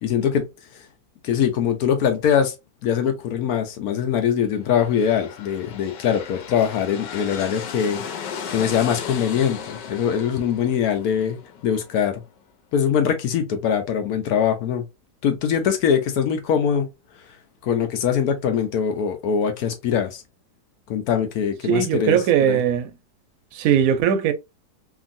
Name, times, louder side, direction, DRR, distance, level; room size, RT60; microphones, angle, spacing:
voice 1, 0.0-0.9 1.2-2.5 2.8-8.0 8.5-12.2 12.7-14.8 15.2-16.9 17.6-20.2 20.9-22.6, left 8 dB, 70° left, 1.0 m, -22 dB
sound 1, 4.6-12.3, left 7 dB, 85° left, 1.3 m, -36 dB
voice 2, 21.6-22.9 23.5-24.3, right 9 dB, 70° right, 0.9 m, -19 dB
2.9 x 2.6 x 2.5 m
omnidirectional pair, 1.8 m